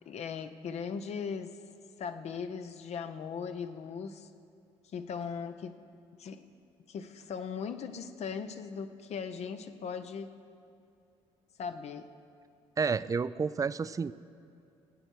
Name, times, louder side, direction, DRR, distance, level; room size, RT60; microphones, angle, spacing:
voice 1, 0.1-1.6 2.0-4.3 4.9-5.8 6.2-6.4 6.9-10.3 11.6-12.1, left 6 dB, 55° left, 9 dB, 0.6 m, -38 dB
voice 2, 12.8-14.1, right 5 dB, 25° right, 17 dB, 0.3 m, -30 dB
16.5 x 8.8 x 4.5 m, 2.5 s
hypercardioid pair, 55°, 14 cm